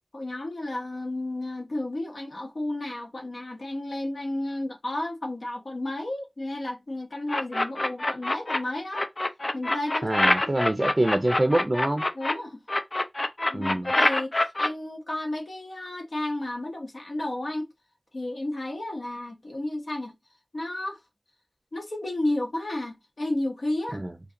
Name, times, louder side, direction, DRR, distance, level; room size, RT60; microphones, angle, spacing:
voice 1, 0.1-9.1 9.5-10.1 10.4-10.6 12.1-12.6 13.5-17.7 18.1-20.1 20.5-21.0 21.7-24.0, left 1 dB, 80° left, 1.1 m, -32 dB
sound 1, 7.3-8.6 8.9-12.3 12.7-14.7, left 1 dB, 50° left, 0.6 m, -25 dB
voice 2, 10.0-12.0 13.5-13.9 23.9-24.1, right 1 dB, 35° right, 0.5 m, -25 dB
2.8 x 2.8 x 3.7 m
wide cardioid pair, 50°, 0 cm